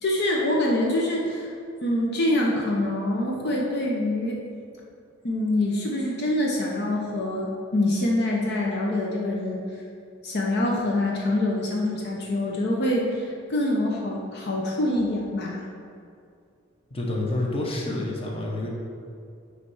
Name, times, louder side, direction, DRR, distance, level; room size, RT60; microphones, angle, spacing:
voice 1, 0.0-1.5 1.8-4.4 5.2-9.6 10.2-15.6, left 1 dB, 55° left, -2 dB, 0.9 m, -25 dB
voice 2, 16.9-18.7, left 2 dB, 30° left, -2 dB, 1.1 m, -28 dB
8.6 x 3.3 x 5.6 m, 2.4 s
head